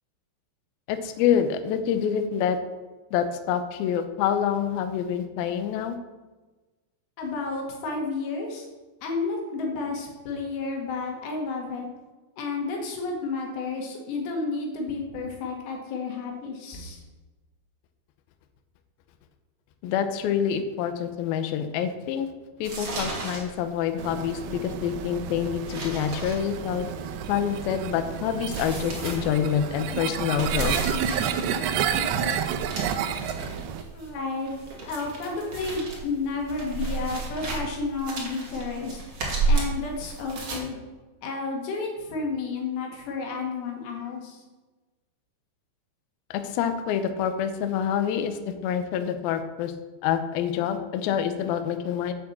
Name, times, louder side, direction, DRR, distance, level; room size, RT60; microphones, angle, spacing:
voice 1, 0.9-2.6 3.1-6.0 19.8-22.3 22.6-26.9 27.3-30.7 33.0-33.3 46.3-49.7 50.0-52.1, left 8 dB, 90° left, 8 dB, 2.1 m, -27 dB
voice 2, 7.2-8.7 9.0-11.9 12.4-17.0 33.9-34.5 34.9-39.0 39.5-40.8 41.2-44.4, left 3 dB, 65° left, 1 dB, 3.9 m, -31 dB
sound 1, 22.6-40.6, right 3 dB, 35° right, 2.3 m, -33 dB
sound 2, 24.0-33.8, right 8 dB, 90° right, 2.2 m, -30 dB
8.5 x 7.7 x 7.3 m, 1.2 s
omnidirectional pair, 5.5 m